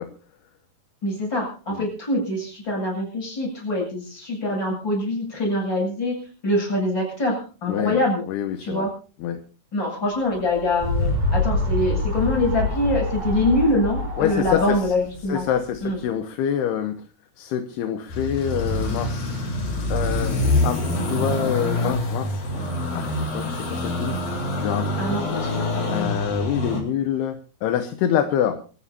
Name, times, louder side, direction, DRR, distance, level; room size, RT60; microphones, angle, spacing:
voice 1, 1.0-8.2 8.6-8.9 9.7-15.4 15.8-16.0 25.0-25.9, left 1 dB, 25° left, -1 dB, 8.6 m, -24 dB
voice 2, 7.7-8.0 8.3-8.9 9.2-9.4 14.2-14.9 15.3-17.0 17.4-19.3 19.9-25.2 25.4-25.6 25.9-28.6, left 9 dB, 75° left, 8 dB, 2.9 m, -26 dB
sound 1, 10.3-15.9, left 2 dB, 75° right, 6.8 m, -26 dB
sound 2, 18.1-26.8, left 1 dB, 55° left, 6.6 m, -25 dB
26.0 x 15.0 x 2.9 m, 0.39 s
omnidirectional pair, 4.8 m